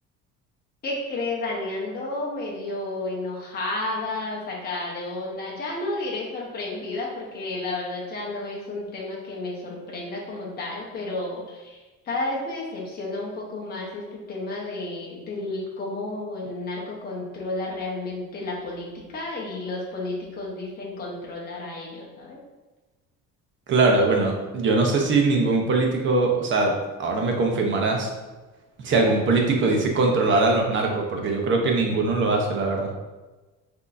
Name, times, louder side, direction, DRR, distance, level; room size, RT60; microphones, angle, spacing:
voice 1, 0.8-22.4, left 2 dB, 30° left, -3 dB, 0.9 m, -32 dB
voice 2, 23.7-26.7 27.0-28.1 28.8-32.9, right 3 dB, 40° right, 1 dB, 0.8 m, -21 dB
5.9 x 2.8 x 2.6 m, 1.2 s
cardioid pair, 155°, 31 cm